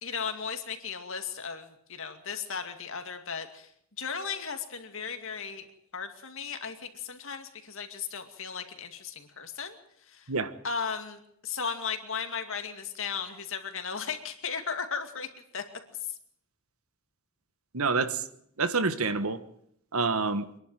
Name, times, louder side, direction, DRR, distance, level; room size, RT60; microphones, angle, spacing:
voice 1, 0.0-3.7 4.0-5.7 5.9-9.8 10.1-10.3 10.6-15.6, left 6 dB, 60° left, 6 dB, 2.4 m, -36 dB
voice 2, 17.7-18.2 18.6-19.4 19.9-20.5, right 4 dB, 75° right, 11 dB, 1.4 m, -27 dB
25.0 x 11.5 x 9.2 m, 0.69 s
head